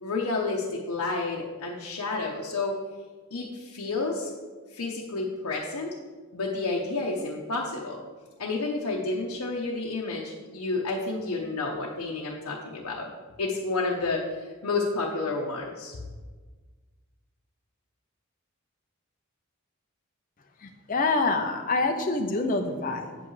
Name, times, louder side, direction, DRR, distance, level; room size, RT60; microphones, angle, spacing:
voice 1, 0.0-2.8 3.3-4.3 4.7-5.9 6.3-8.0 8.4-13.1 13.4-16.0, left 3 dB, 85° left, -3 dB, 0.9 m, -30 dB
voice 2, 20.6-23.2, left 3 dB, 35° left, 4 dB, 0.6 m, -26 dB
8.3 x 7.9 x 3.2 m, 1.4 s
head